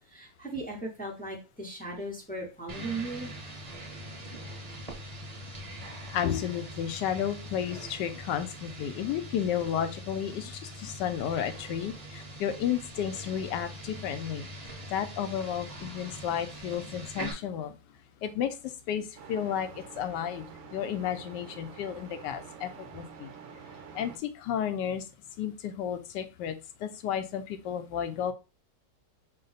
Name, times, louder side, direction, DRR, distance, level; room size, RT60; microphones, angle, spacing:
voice 1, 0.1-3.3, right 2 dB, 10° left, -1 dB, 0.4 m, -37 dB
sound 1, 2.7-17.3, right 1 dB, 25° right, 0.9 m, -43 dB
voice 2, 6.1-14.5 14.9-17.8 18.2-23.3 23.9-25.0 25.4-28.3, left 9 dB, 80° left, 10 dB, 1.2 m, -32 dB
sound 2, 19.2-24.2, right 6 dB, 65° right, 0.8 m, -48 dB
5.3 x 2.0 x 4.0 m, 0.31 s
omnidirectional pair, 1.9 m